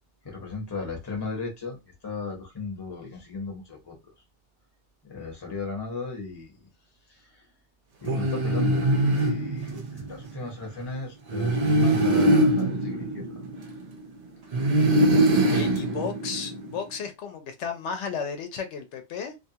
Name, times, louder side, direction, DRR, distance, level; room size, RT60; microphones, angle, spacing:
voice 1, 0.2-4.0 5.0-6.7 7.1-7.5 8.0-13.3 15.2-15.9, left 3 dB, 25° left, 0.8 m, -36 dB
sound 1, 8.1-10.2 11.3-14.0 14.5-16.8, right 1 dB, 45° right, 0.6 m, -23 dB
voice 2, 15.5-19.4, left 6 dB, 80° left, 0.9 m, -33 dB
2.6 x 2.3 x 2.7 m
omnidirectional pair, 1.2 m